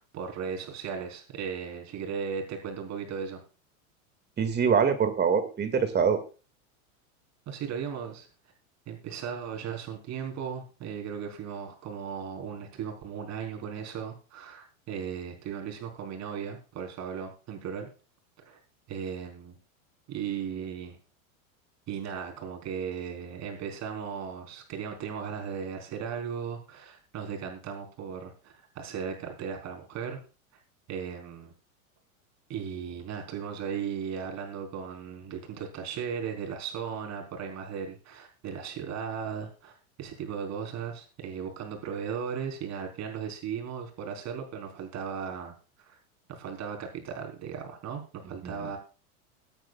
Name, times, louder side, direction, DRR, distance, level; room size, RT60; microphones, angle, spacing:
voice 1, 0.0-3.4 7.5-8.3 8.9-17.9 18.4-18.6 18.9-19.6 20.1-21.0 21.9-30.2 30.9-31.5 32.5-45.5 45.9-46.0 46.3-48.8, right 7 dB, 40° right, 2 dB, 4.2 m, -36 dB
voice 2, 4.4-6.2 48.4-48.7, right 6 dB, 25° right, 8 dB, 2.2 m, -24 dB
22.5 x 9.1 x 2.4 m, 0.36 s
hypercardioid pair, 115°, 43 cm